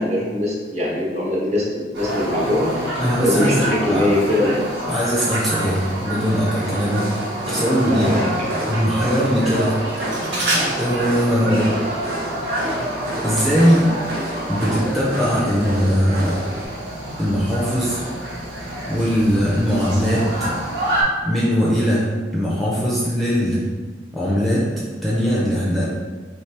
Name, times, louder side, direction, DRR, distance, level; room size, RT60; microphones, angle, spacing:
voice 1, 0.0-2.7 3.2-4.6 7.9-8.3 11.4-11.8, left 1 dB, 35° right, -5 dB, 1.1 m, -21 dB
sound 1, 1.9-21.0, right 1 dB, 85° right, 1.4 m, -28 dB
voice 2, 3.0-4.1 4.9-7.1 7.5-9.8 10.8-11.7 12.0-12.1 13.2-13.9 14.5-16.4 17.2-18.0 18.9-20.5 21.2-23.7 24.1-24.7 25.0-25.8, equal, ahead, -7 dB, 0.5 m, -20 dB
sound 2, 6.6-16.7, right 1 dB, 55° right, 0.7 m, -29 dB
4.4 x 3.2 x 3.3 m, 1.5 s
head